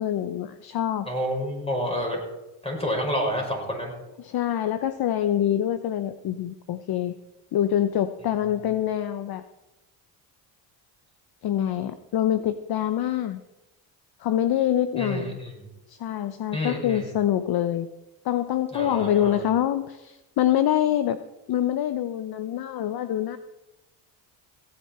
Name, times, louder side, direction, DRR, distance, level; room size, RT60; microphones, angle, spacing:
voice 1, 0.0-1.1 4.2-7.1 7.5-9.4 11.4-13.4 14.2-15.4 15.9-17.9 18.2-21.2 21.5-23.4, left 11 dB, 50° left, 12 dB, 0.7 m, -25 dB
voice 2, 1.1-2.2 2.6-3.9 15.0-15.5 16.5-17.1 18.7-19.4, equal, 10° left, 0 dB, 5.6 m, -29 dB
17.0 x 9.5 x 4.3 m, 0.97 s
supercardioid pair, 80°, 50 cm